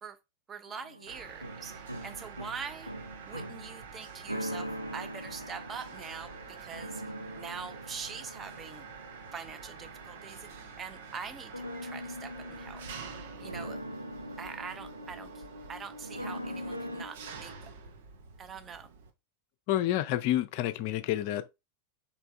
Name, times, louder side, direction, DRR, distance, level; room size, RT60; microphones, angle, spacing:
voice 1, 0.5-2.9 3.3-7.0 7.4-8.8 9.3-10.5 10.8-12.8 13.4-13.8 14.4-15.4 15.7-17.7 18.4-18.9, right 6 dB, 20° right, 0.7 m, -43 dB
sound 1, 0.7-17.1, equal, 85° right, 0.3 m, -43 dB
Mechanisms, 1.1-19.1, right 5 dB, 55° right, 0.9 m, -47 dB
voice 2, 19.7-21.5, left 13 dB, 45° left, 0.5 m, -29 dB
4.5 x 3.5 x 3.2 m
figure-of-eight pair, 90°, 0 cm